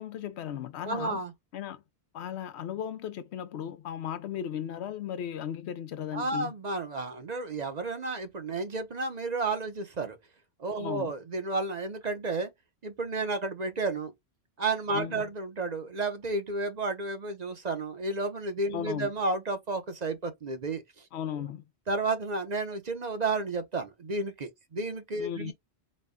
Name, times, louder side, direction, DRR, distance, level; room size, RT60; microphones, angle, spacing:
voice 1, 0.0-1.2 1.5-1.8 2.1-6.5 10.8-11.1 14.9-15.3 18.7-19.1 21.1-21.7 25.2-25.5, left 9 dB, 80° left, 0.8 m, -36 dB
voice 2, 0.8-1.3 6.1-10.2 10.6-12.5 12.8-14.1 14.6-21.0 21.9-25.5, right 3 dB, 45° right, 0.8 m, -32 dB
4.1 x 2.1 x 3.6 m
omnidirectional pair, 1.1 m